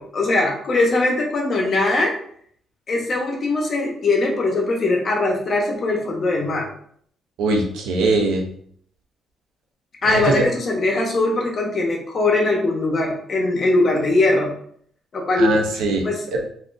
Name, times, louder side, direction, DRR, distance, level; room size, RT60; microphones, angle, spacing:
voice 1, 0.0-2.1 2.9-6.7 10.0-14.5 15.1-15.6 16.0-16.2, left 2 dB, 45° left, 0 dB, 0.9 m, -21 dB
voice 2, 7.4-8.5 10.1-10.5 15.4-16.0 16.3-16.4, right 2 dB, 90° right, 1 dB, 0.7 m, -21 dB
3.5 x 2.7 x 2.6 m, 0.63 s
cardioid pair, 90°, 0 cm